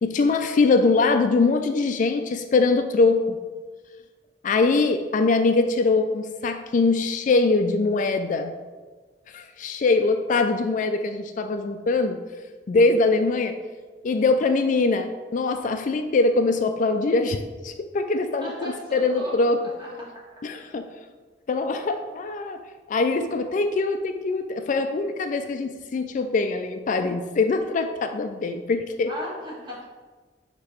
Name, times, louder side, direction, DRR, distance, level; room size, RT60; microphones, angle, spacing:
voice 1, 0.0-3.4 4.4-8.6 9.3-12.2 12.7-13.6 14.0-19.6 20.4-20.9 21.5-22.6 22.9-29.1, left 3 dB, 45° left, 7 dB, 0.4 m, -22 dB
voice 2, 18.4-19.3 19.8-19.9 29.1-29.8, equal, 25° right, -4 dB, 1.7 m, -36 dB
6.4 x 2.9 x 5.8 m, 1.3 s
head